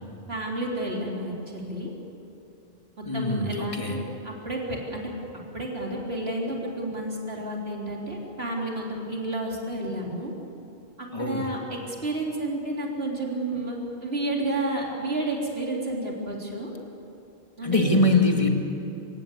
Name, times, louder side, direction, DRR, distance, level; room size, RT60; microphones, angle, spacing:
voice 1, 0.3-1.9 3.0-5.1 5.5-10.3 11.0-16.7 17.6-17.9, right 1 dB, 70° right, -2 dB, 3.8 m, -31 dB
voice 2, 3.1-4.0 11.1-11.5 17.6-18.5, left 2 dB, 30° left, 2 dB, 2.3 m, -23 dB
27.0 x 16.5 x 8.4 m, 2.8 s
omnidirectional pair, 1.1 m